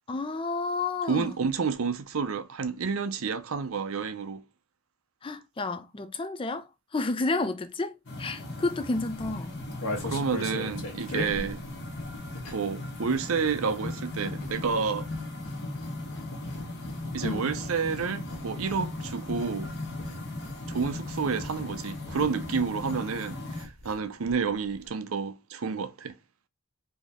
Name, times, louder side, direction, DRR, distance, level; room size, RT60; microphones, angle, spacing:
voice 1, 0.1-1.3 5.2-6.6 6.9-7.9 8.2-9.5 17.2-17.5, left 3 dB, 25° left, 0.4 m, -30 dB
voice 2, 1.1-4.4 10.0-11.6 12.5-15.1 17.1-19.7 20.7-26.2, right 5 dB, 75° right, 0.6 m, -30 dB
sound 1, 8.1-23.6, left 2 dB, 50° left, 1.3 m, -37 dB
sound 2, 9.2-12.8 13.1-24.0 24.3-24.4 24.6-24.9, left 2 dB, 80° left, 1.4 m, -41 dB
4.2 x 2.8 x 3.5 m
head